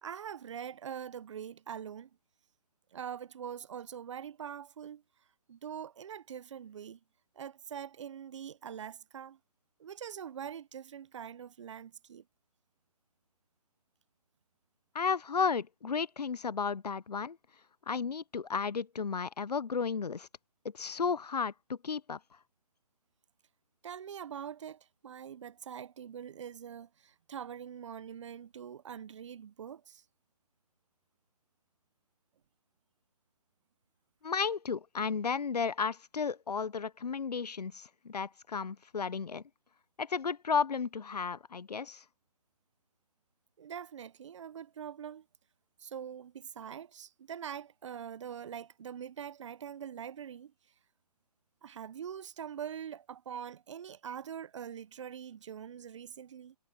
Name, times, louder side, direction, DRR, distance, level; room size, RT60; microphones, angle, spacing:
voice 1, 0.0-2.1 2.9-5.0 5.5-7.0 7.4-9.4 9.8-12.2 23.8-30.0 43.6-45.2 45.8-50.5 51.6-56.6, right 8 dB, 50° right, 1.0 m, -43 dB
voice 2, 14.9-17.4 17.9-20.3 20.7-22.2 34.2-39.4 40.0-42.0, left 5 dB, 80° left, 0.9 m, -33 dB
figure-of-eight pair, 150°, 20 cm